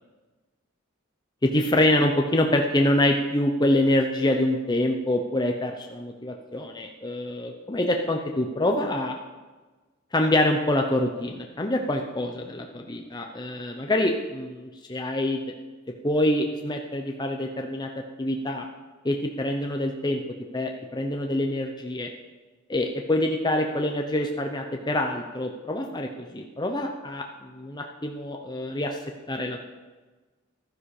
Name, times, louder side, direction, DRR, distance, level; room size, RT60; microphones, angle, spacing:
voice 1, 1.4-9.2 10.1-15.4 16.0-17.9 18.2-18.7 19.0-20.2 20.5-22.1 22.7-29.0 29.3-29.6, left 1 dB, 20° left, 2 dB, 0.8 m, -25 dB
15.0 x 11.5 x 4.9 m, 1.3 s
head